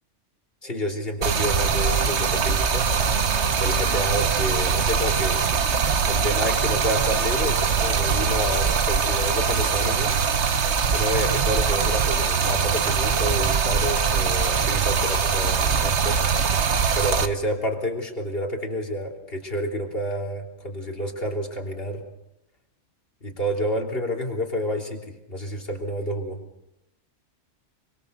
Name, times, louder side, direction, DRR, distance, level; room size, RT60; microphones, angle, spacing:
voice 1, 0.6-2.9 3.6-5.4 6.1-10.2 10.9-16.2 16.9-22.0 23.2-25.0 25.3-26.4, equal, 50° left, 1 dB, 3.6 m, -29 dB
sound 1, 0.6-7.5, right 2 dB, 40° right, 3.9 m, -49 dB
Stream, 1.2-17.3, right 6 dB, 65° right, 1.4 m, -22 dB
25.5 x 24.0 x 6.7 m, 0.86 s
omnidirectional pair, 1.2 m